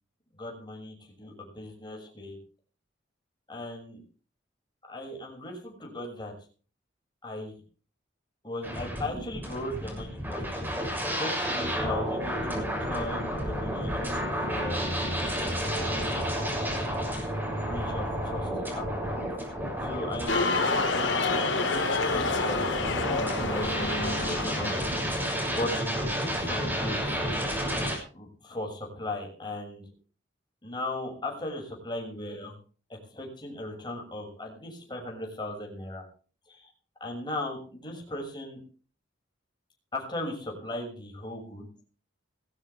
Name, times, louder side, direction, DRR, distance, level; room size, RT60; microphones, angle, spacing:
voice 1, 0.3-2.4 3.5-4.0 4.9-6.3 7.2-7.6 8.4-10.6 10.9-14.9 15.5-16.5 17.5-19.4 19.8-21.4 22.0-22.7 23.0-25.2 25.5-25.8 26.4-27.2 28.1-29.9 30.6-32.5 32.9-36.0 36.5-36.7 37.0-38.6 39.9-41.7, left 1 dB, 25° left, 0 dB, 6.4 m, -37 dB
sound 1, 8.6-28.0, equal, 10° right, 6.7 m, -31 dB
sound 2, 20.3-25.1, left 3 dB, 85° left, 4.3 m, -28 dB
20.0 x 14.5 x 3.5 m, 0.39 s
head